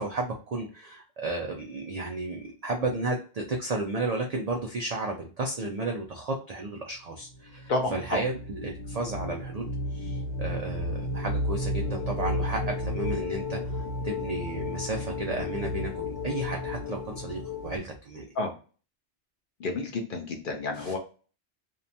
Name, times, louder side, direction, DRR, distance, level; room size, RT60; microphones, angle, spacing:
voice 1, 0.0-18.3 20.7-20.9, right 2 dB, 65° right, 1 dB, 0.4 m, -33 dB
sound 1, 7.2-17.8, left 1 dB, 75° left, 1.2 m, -33 dB
voice 2, 19.6-21.0, left 2 dB, 55° left, 2 dB, 0.7 m, -30 dB
2.7 x 2.2 x 2.6 m, 0.38 s
omnidirectional pair, 1.2 m